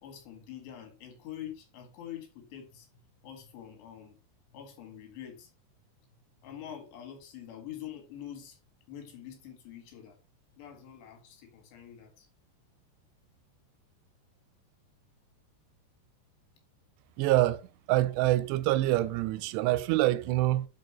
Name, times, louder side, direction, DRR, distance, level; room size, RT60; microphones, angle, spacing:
voice 1, 0.0-2.9 3.2-4.2 4.5-5.5 6.4-8.6 8.9-10.2 10.6-12.3, left 10 dB, 85° left, 4.1 m, -45 dB
voice 2, 17.2-17.6 17.9-20.7, right 16 dB, 90° right, 2.8 m, -26 dB
10.5 x 4.5 x 3.0 m
omnidirectional pair, 4.8 m